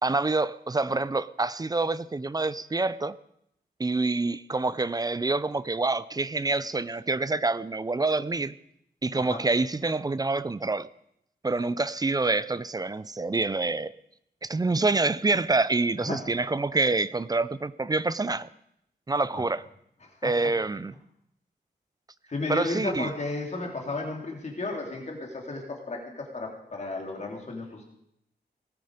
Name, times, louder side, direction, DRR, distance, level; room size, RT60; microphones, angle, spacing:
voice 1, 0.0-3.2 3.8-8.5 9.0-10.9 11.4-13.9 14.4-18.5 19.1-19.6 20.2-20.9 22.5-23.1, right 3 dB, 20° right, 0.5 m, -27 dB
voice 2, 22.3-27.8, left 3 dB, 40° left, 3.8 m, -34 dB
19.0 x 13.5 x 5.1 m
wide cardioid pair, 120°, 18 cm